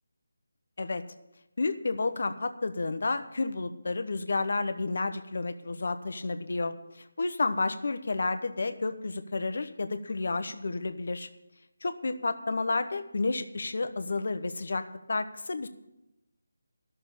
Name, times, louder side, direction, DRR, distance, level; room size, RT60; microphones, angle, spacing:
voice 1, 1.6-11.3 11.8-15.7, left 3 dB, 60° left, 10 dB, 1.0 m, -31 dB
12.5 x 6.7 x 8.5 m, 0.92 s
figure-of-eight pair, 165°, 0 cm